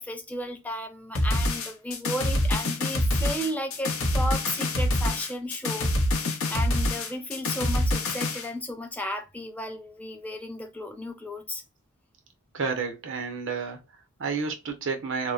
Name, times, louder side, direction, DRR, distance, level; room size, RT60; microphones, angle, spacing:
voice 1, 0.0-11.6, equal, 5° left, 0.4 m, -34 dB
sound 1, 1.2-8.5, left 1 dB, 70° left, 0.7 m, -26 dB
voice 2, 12.5-15.3, right 5 dB, 60° right, 0.6 m, -31 dB
2.9 x 2.0 x 2.3 m
head